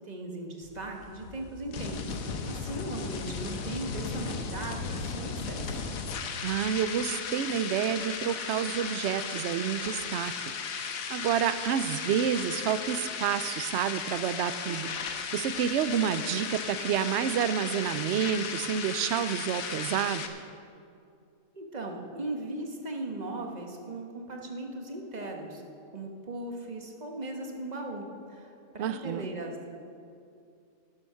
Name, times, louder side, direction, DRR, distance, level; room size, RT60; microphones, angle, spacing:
voice 1, 0.1-5.8 21.5-25.6 25.9-29.7, right 2 dB, 30° right, 2 dB, 1.4 m, -38 dB
sound 1, 0.6-20.3, left 5 dB, 75° left, 1.4 m, -36 dB
voice 2, 6.4-20.2 28.8-29.3, right 9 dB, 65° right, 13 dB, 0.8 m, -29 dB
12.5 x 11.0 x 5.7 m, 2.5 s
omnidirectional pair, 1.4 m